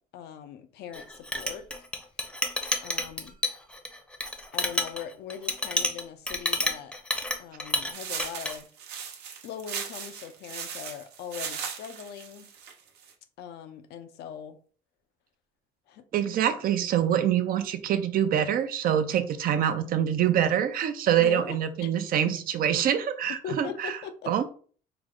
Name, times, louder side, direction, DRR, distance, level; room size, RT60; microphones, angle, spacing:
voice 1, 0.1-1.7 2.8-3.4 4.5-7.0 7.4-8.7 9.4-12.5 13.4-14.6 15.9-16.1 21.2-21.9 23.4-24.4, left 8 dB, 75° left, 0.6 m, -40 dB
Chink clink, 0.9-7.9 8.2-8.5, left 1 dB, 5° left, 0.7 m, -30 dB
sound 1, 7.9-13.1, right 7 dB, 80° right, 1.0 m, -38 dB
voice 2, 16.1-23.9 24.3-24.4, right 9 dB, 60° right, 0.6 m, -25 dB
4.7 x 2.1 x 3.7 m
cardioid pair, 110°, 17 cm